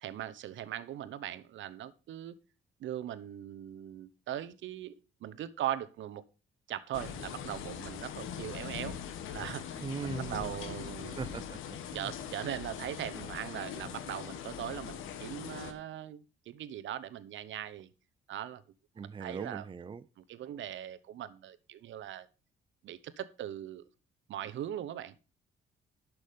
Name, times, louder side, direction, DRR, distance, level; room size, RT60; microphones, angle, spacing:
voice 1, 0.0-2.4 2.8-6.2 6.7-11.3 11.9-17.9 18.3-18.6 19.0-19.7 20.2-22.3 22.8-23.9 24.3-25.2, right 11 dB, 75° right, 0.9 m, -40 dB
sound 1, 6.9-15.7, left 8 dB, 90° left, 1.4 m, -41 dB
voice 2, 9.8-10.6 11.0-12.1 19.0-20.0, right 5 dB, 25° right, 0.5 m, -41 dB
11.5 x 6.2 x 5.2 m
cardioid pair, 90°, 20 cm